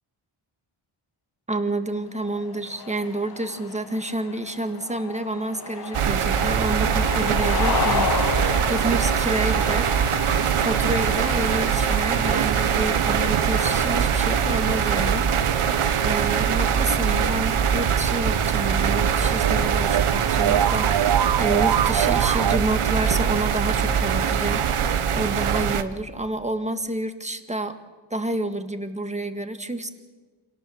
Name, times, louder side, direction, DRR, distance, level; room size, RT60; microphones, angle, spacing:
voice 1, 1.5-9.9 10.6-27.8 28.1-29.9, right 1 dB, 15° right, 7 dB, 1.8 m, -29 dB
sound 1, 2.1-17.8, left 7 dB, 45° left, 0.9 m, -34 dB
sound 2, 5.9-25.8, right 8 dB, 85° right, 1.2 m, -22 dB
sound 3, 17.3-22.6, right 10 dB, 55° right, 0.7 m, -26 dB
28.0 x 18.0 x 7.4 m, 1.4 s
wide cardioid pair, 95°, 49 cm